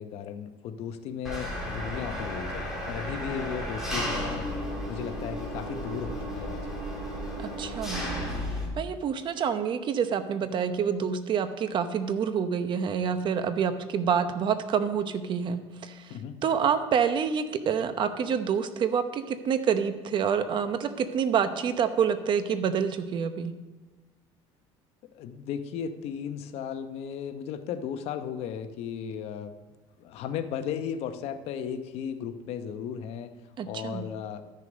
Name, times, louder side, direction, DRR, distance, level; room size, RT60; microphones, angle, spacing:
voice 1, 0.0-4.5 4.9-6.6 16.1-16.4 25.1-29.5 30.0-33.3 33.7-34.4, left 8 dB, 65° left, 9 dB, 0.9 m, -35 dB
Engine, 1.2-8.7, equal, 5° right, 3.4 m, -33 dB
voice 2, 7.4-8.0 8.8-16.0 16.4-23.5 33.6-34.0, right 7 dB, 45° right, 10 dB, 0.9 m, -27 dB
13.0 x 6.6 x 5.2 m, 1.2 s
cardioid pair, 110°, 11 cm